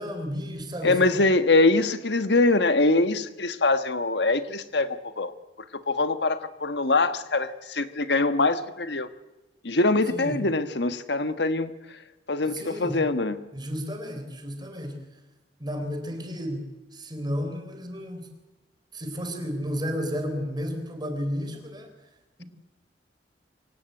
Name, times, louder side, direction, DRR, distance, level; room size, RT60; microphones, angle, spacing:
voice 1, 0.0-1.2 10.1-10.4 12.4-13.0 13.5-15.0 15.6-18.2 18.9-21.9 22.4-22.5, equal, 25° right, 6 dB, 4.3 m, -32 dB
voice 2, 0.8-5.3 5.9-9.1 9.6-11.7 12.3-13.4, left 2 dB, 70° left, 10 dB, 1.5 m, -23 dB
25.0 x 17.0 x 8.0 m, 1.1 s
head